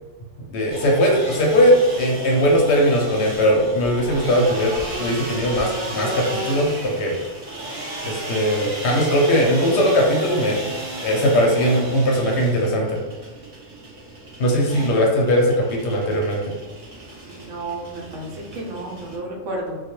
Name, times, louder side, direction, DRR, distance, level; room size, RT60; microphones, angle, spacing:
voice 1, 0.5-4.7 5.0-7.1 8.0-10.7 11.0-13.0 14.4-16.5, equal, 65° left, -1 dB, 0.8 m, -19 dB
sound 1, 0.7-19.2, right 1 dB, 45° right, 0.4 m, -34 dB
voice 2, 17.2-19.8, right 2 dB, 80° right, -2 dB, 1.0 m, -32 dB
2.2 x 2.2 x 2.9 m, 1.2 s
omnidirectional pair, 1.3 m